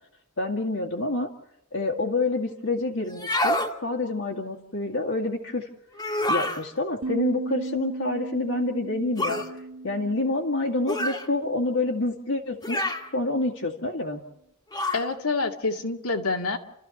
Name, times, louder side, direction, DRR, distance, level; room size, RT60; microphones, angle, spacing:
voice 1, 0.4-1.3 1.7-5.7 6.3-9.4 9.8-12.9 13.1-14.2, left 2 dB, 70° left, -2 dB, 2.1 m, -27 dB
sound 1, 3.1-3.7 5.9-6.6 9.2-9.5 10.9-11.3 12.6-13.1 14.7-15.1, left 1 dB, 20° left, 1.6 m, -27 dB
sound 2, 7.0-12.2, right 2 dB, 80° right, 1.7 m, -37 dB
voice 2, 14.9-16.6, left 3 dB, 90° left, 3 dB, 2.1 m, -27 dB
29.5 x 14.0 x 7.1 m, 0.85 s
head